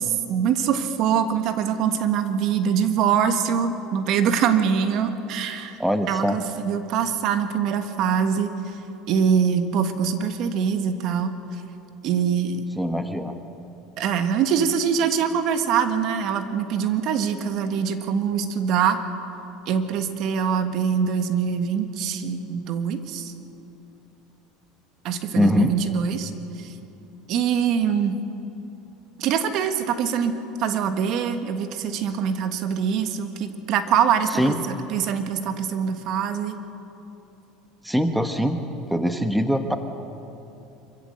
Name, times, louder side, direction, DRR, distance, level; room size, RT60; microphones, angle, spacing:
voice 1, 0.0-5.8 6.1-8.8 9.1-11.3 12.0-12.6 14.0-19.0 19.7-23.3 25.0-26.3 26.6-26.7 27.3-28.1 29.2-30.3 30.6-34.6 34.9-36.5, right 7 dB, 55° right, 9 dB, 1.6 m, -23 dB
voice 2, 5.8-6.4 12.8-13.4 25.3-25.8 34.3-34.6 37.8-38.6 38.9-39.8, equal, ahead, 7 dB, 1.1 m, -22 dB
25.5 x 15.0 x 7.9 m, 2.9 s
supercardioid pair, 125°, 0 cm